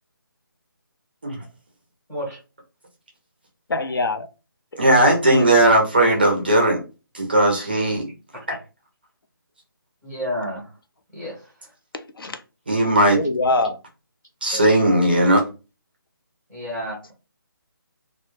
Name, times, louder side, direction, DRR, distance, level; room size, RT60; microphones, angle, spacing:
voice 1, 3.7-4.3 5.2-5.6 11.9-12.4 13.1-13.8 14.5-14.6, left 2 dB, 75° left, 0.5 m, -24 dB
voice 2, 4.8-6.8 7.1-8.0 8.5-8.6 12.7-13.2 14.4-15.4, right 1 dB, 25° right, 0.4 m, -17 dB
voice 3, 10.0-10.7 11.1-11.7 16.5-17.1, equal, 5° left, 0.8 m, -31 dB
2.1 x 2.0 x 3.0 m
hypercardioid pair, 175°, 12 cm